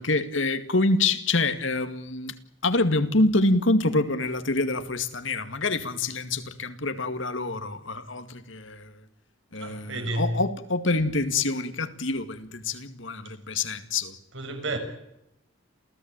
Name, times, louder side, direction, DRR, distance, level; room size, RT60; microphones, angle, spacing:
voice 1, 0.0-2.4 2.6-8.9 9.5-14.1, left 2 dB, 70° left, 2.2 m, -26 dB
voice 2, 9.6-10.3 14.3-14.8, right 2 dB, 70° right, 6.5 m, -31 dB
28.5 x 16.5 x 9.0 m
head